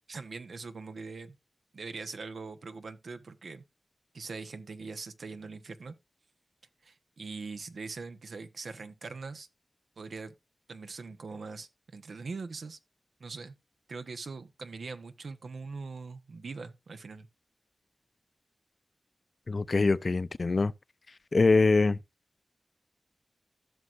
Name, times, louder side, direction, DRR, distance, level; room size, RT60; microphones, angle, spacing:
voice 1, 0.1-1.3 1.7-3.6 4.1-5.9 6.8-9.5 10.0-10.3 10.7-12.8 13.2-13.5 13.9-17.3, right 4 dB, 85° right, 0.9 m, -42 dB
voice 2, 19.5-20.7 21.3-22.0, left 3 dB, 60° left, 0.5 m, -23 dB
15.5 x 6.3 x 2.5 m
cardioid pair, 50°, 0 cm